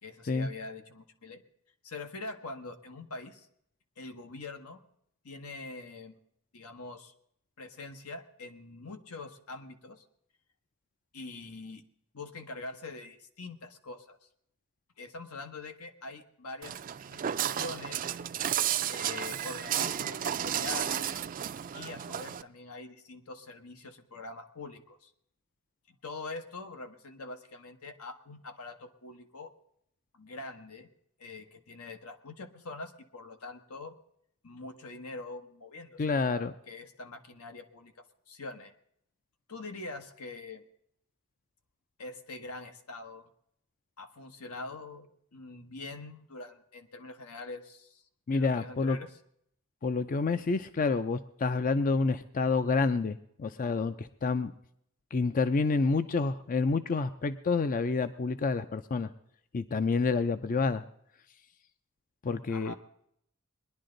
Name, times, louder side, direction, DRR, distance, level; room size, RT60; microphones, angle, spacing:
voice 1, 0.0-1.4 1.8-3.5 4.0-4.8 5.2-6.1 6.5-7.1 7.6-10.0 11.1-11.8 12.1-14.2 15.0-16.8 17.1-18.2 18.9-21.2 21.7-25.1 25.9-29.5 30.1-30.9 31.2-33.9 34.4-38.7 39.5-40.6 42.0-43.3 44.0-48.0 48.3-49.1 62.5-62.7, left 3 dB, 85° left, 7 dB, 1.3 m, -44 dB
Walk footsteps, 16.6-22.4, right 10 dB, 40° right, 0.4 m, -33 dB
voice 2, 36.0-36.5 48.3-49.0 49.8-54.5 55.1-59.1 59.5-60.8 62.2-62.7, left 4 dB, 40° left, 12 dB, 0.5 m, -28 dB
21.0 x 11.0 x 3.9 m, 0.71 s
head